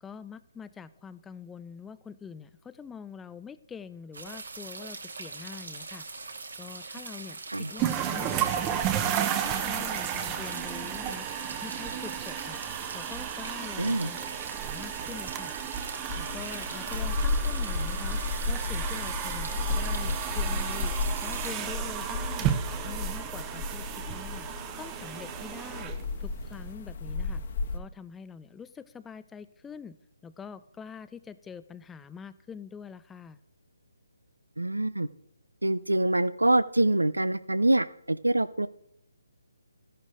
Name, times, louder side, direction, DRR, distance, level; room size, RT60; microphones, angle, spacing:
voice 1, 0.0-12.6 12.9-14.3 14.6-15.6 16.2-18.2 18.5-21.0 21.2-22.6 22.8-24.5 24.8-27.4 27.7-30.0 30.2-33.4, left 6 dB, 10° left, 15 dB, 0.4 m, -45 dB
sound 1, 4.1-21.5, right 3 dB, 70° right, 2.0 m, -42 dB
sound 2, 7.8-26.7, right 9 dB, 20° right, 0.8 m, -33 dB
voice 2, 13.8-14.1 34.6-35.1 35.6-38.7, right 1 dB, 85° right, 15 dB, 0.7 m, -25 dB
sound 3, 16.1-27.8, left 3 dB, 40° left, 1.4 m, -33 dB
13.5 x 11.0 x 3.9 m, 0.75 s
figure-of-eight pair, 145°, 0 cm